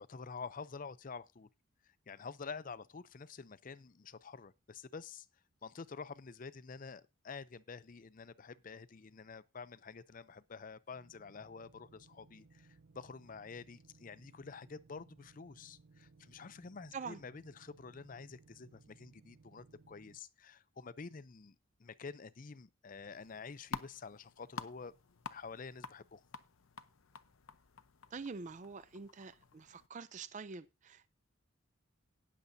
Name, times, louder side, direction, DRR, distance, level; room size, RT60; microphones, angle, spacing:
voice 1, 0.0-1.5 1.8-5.3 5.6-24.9 25.3-26.2, left 5 dB, 40° left, 0.5 m, -49 dB
sound 1, 10.9-20.2, right 3 dB, 90° right, 0.5 m, -63 dB
sound 2, 23.1-29.9, left 5 dB, 85° left, 0.8 m, -50 dB
voice 2, 28.1-31.1, right 5 dB, 35° right, 0.5 m, -46 dB
18.5 x 6.9 x 2.7 m
head